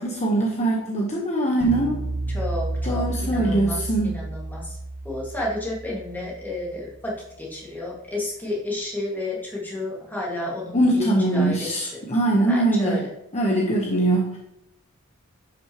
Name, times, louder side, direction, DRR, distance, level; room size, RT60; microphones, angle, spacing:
voice 1, 0.0-2.0 2.8-4.2 10.7-13.0 13.3-14.4, right 2 dB, 30° left, -2 dB, 1.1 m, -22 dB
sound 1, 1.6-6.9, right 2 dB, 70° left, 2.5 m, -31 dB
voice 2, 2.3-4.8 5.0-12.0 12.5-13.0, left 2 dB, 10° left, -4 dB, 2.0 m, -31 dB
10.5 x 6.2 x 3.0 m, 0.80 s
head